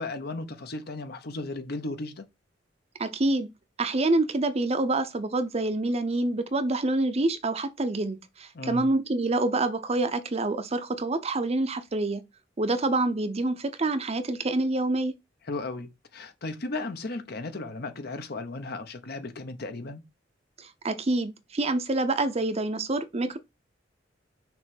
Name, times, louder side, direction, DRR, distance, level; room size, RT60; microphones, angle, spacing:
voice 1, 0.0-2.2 8.5-8.9 15.5-20.0, left 2 dB, 60° left, 0.9 m, -35 dB
voice 2, 3.0-3.5 3.8-12.2 12.6-15.1 20.6-23.4, right 2 dB, 35° right, 0.7 m, -27 dB
6.1 x 3.2 x 5.3 m
head